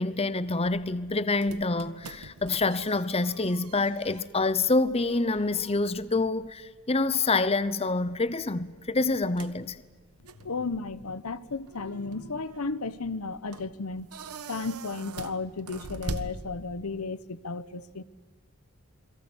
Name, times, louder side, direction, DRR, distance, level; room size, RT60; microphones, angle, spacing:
voice 1, 0.0-9.8, left 3 dB, 25° left, 0.8 m, -27 dB
sound 1, 0.6-17.0, right 2 dB, 90° right, 1.6 m, -44 dB
voice 2, 10.4-14.1 14.5-18.0, left 3 dB, 80° left, 1.0 m, -34 dB
29.0 x 22.5 x 8.1 m
head